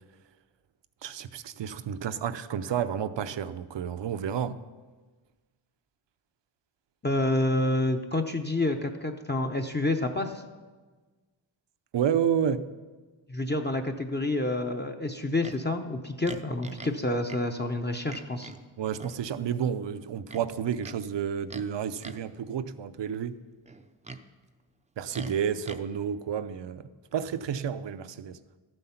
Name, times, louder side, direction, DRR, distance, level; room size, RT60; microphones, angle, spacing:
voice 1, 1.0-4.6 11.9-12.7 18.8-23.4 25.0-28.4, right 8 dB, 60° right, 0.6 m, -30 dB
voice 2, 7.0-10.4 13.3-18.5, left 2 dB, 20° left, 0.7 m, -28 dB
Livestock farm animals working animals, 15.4-15.6 16.2-17.0 17.3-17.4 18.1-18.6 19.0-19.2 20.3-21.0 21.5-21.7 22.0-22.3 23.7-24.2 25.1-25.8, right 3 dB, 15° right, 0.5 m, -42 dB
13.0 x 7.8 x 5.8 m
wide cardioid pair, 100°, 50 cm